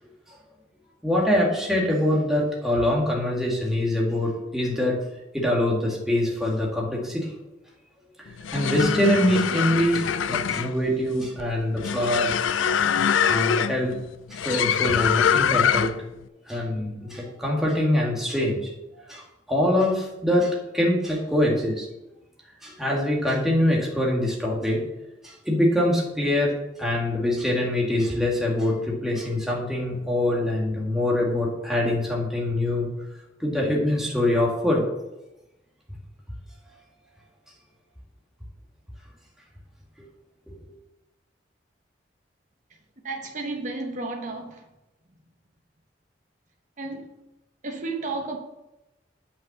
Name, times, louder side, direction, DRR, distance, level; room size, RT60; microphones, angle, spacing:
voice 1, 1.0-5.0 5.3-7.3 8.2-12.3 12.6-12.7 13.3-13.9 14.3-15.9 16.5-18.7 19.1-21.9 22.6-24.8 25.2-32.9 33.4-34.8 40.5-40.6, left 1 dB, ahead, 1.9 m, -24 dB
sound 1, 8.3-16.1, left 7 dB, 90° left, 0.4 m, -24 dB
voice 2, 43.0-44.6 46.8-47.1 47.6-48.4, right 3 dB, 40° right, 1.1 m, -32 dB
8.6 x 5.7 x 6.0 m
head